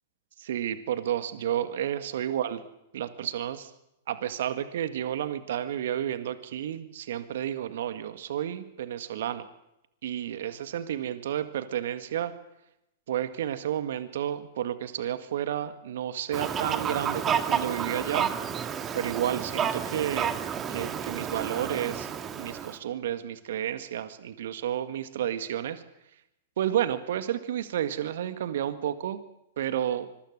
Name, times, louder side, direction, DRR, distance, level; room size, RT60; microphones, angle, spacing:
voice 1, 0.4-2.6 2.9-3.7 4.1-9.5 10.0-12.3 13.1-18.3 18.9-20.4 20.7-22.1 22.4-25.8 26.6-29.2 29.6-30.1, right 10 dB, 60° right, 11 dB, 1.8 m, -31 dB
Fowl, 16.3-22.8, right 8 dB, 25° right, 2.1 m, -31 dB
25.5 x 22.5 x 6.7 m, 0.82 s
figure-of-eight pair, 105°, 0 cm